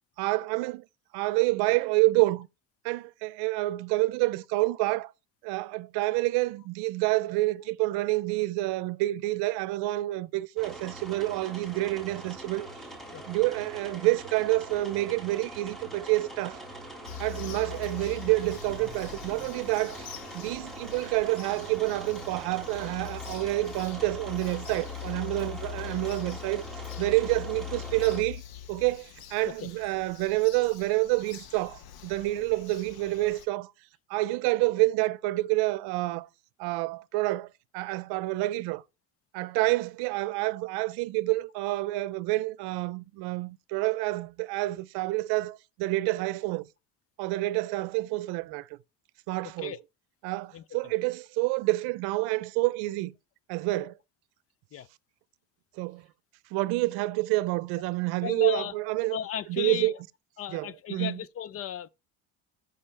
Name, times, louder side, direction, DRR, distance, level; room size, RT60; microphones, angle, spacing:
voice 1, 0.2-0.8 1.1-2.5 2.8-5.1 5.4-12.7 13.2-16.6 17.2-20.1 20.3-26.6 27.0-28.4 28.7-33.7 34.1-36.3 36.6-38.8 39.3-46.7 47.2-48.7 49.3-49.7 50.2-53.1 53.5-53.9 55.8-56.0 56.5-59.2 59.5-59.9 60.5-61.2, right 20 dB, 80° right, 0.7 m, -28 dB
sound 1, 10.6-28.2, right 1 dB, ahead, 2.0 m, -43 dB
Bird vocalization bird call bird song, 17.0-33.5, left 10 dB, 70° left, 1.5 m, -43 dB
voice 2, 50.5-50.9 54.7-54.9 58.2-58.8 59.1-60.0 60.4-61.9, left 9 dB, 40° left, 0.5 m, -35 dB
13.0 x 5.4 x 3.4 m
cardioid pair, 120°, 38 cm